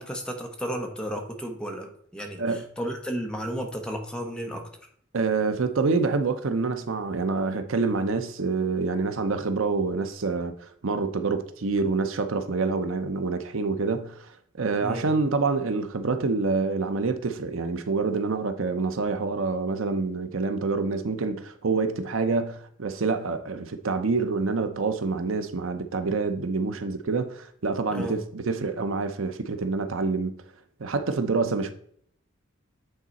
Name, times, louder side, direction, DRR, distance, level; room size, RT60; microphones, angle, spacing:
voice 1, 0.0-4.7 14.8-15.1 27.9-28.2, equal, 5° left, 1.1 m, -33 dB
voice 2, 5.1-30.3 30.8-31.7, right 4 dB, 75° right, 0.7 m, -27 dB
8.9 x 4.0 x 4.1 m
head